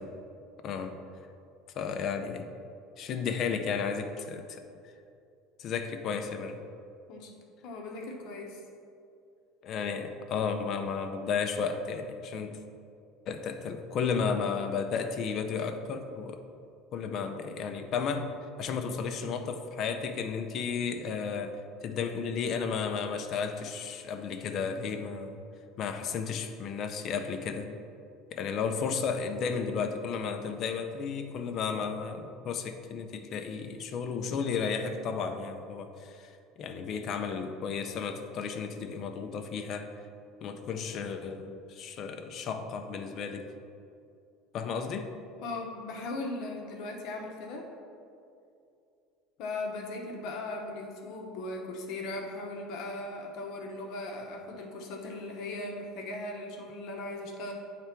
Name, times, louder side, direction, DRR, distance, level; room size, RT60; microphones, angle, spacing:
voice 1, 0.6-0.9 1.8-2.5 3.0-4.6 5.6-6.6 9.6-12.6 13.3-16.4 16.9-18.3 18.6-25.4 25.8-27.7 28.3-36.3 36.6-39.9 40.4-43.5 44.5-45.1, left 5 dB, 35° left, 6 dB, 0.4 m, -33 dB
voice 2, 7.6-8.6 45.4-47.7 49.4-57.5, left 2 dB, 50° left, 1 dB, 0.9 m, -38 dB
8.1 x 3.4 x 4.4 m, 2.5 s
cardioid pair, 175°, 0 cm